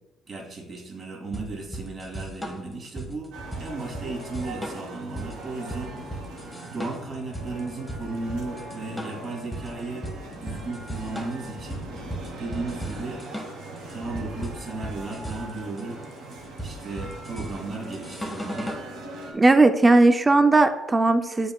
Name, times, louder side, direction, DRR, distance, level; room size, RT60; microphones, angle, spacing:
voice 1, 0.3-6.3 6.7-11.9 12.4-13.2 13.9-16.0 16.6-18.7, right 3 dB, 45° right, 0 dB, 2.1 m, -35 dB
sound 1, 1.3-18.9, right 1 dB, 5° left, 1.4 m, -37 dB
sound 2, 3.3-19.3, right 2 dB, 80° right, 2.0 m, -40 dB
voice 2, 19.3-21.5, right 2 dB, 20° right, 9 dB, 0.4 m, -17 dB
7.8 x 5.3 x 2.3 m, 0.95 s
supercardioid pair, 75°, 0 cm